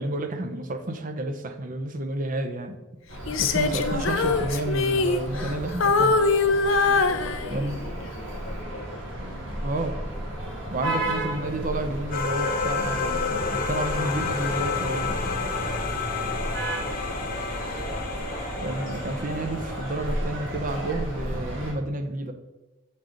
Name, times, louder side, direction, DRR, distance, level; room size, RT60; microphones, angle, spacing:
voice 1, 0.0-2.8 3.4-6.2 7.5-7.8 9.6-10.0 10.7-15.2 18.6-22.3, right 2 dB, 40° right, 7 dB, 0.6 m, -30 dB
sound 1, 3.1-21.7, right 1 dB, 70° right, 1.7 m, -33 dB
Female singing, 3.3-5.6 5.8-7.9 8.4-8.6, left 4 dB, 70° left, 0.5 m, -23 dB
voice 2, 6.9-9.0 16.8-18.5, left 1 dB, 90° left, -3 dB, 1.0 m, -44 dB
sound 2, 12.1-20.7, left 5 dB, 45° left, 1.0 m, -31 dB
7.5 x 3.8 x 4.9 m, 1.1 s
head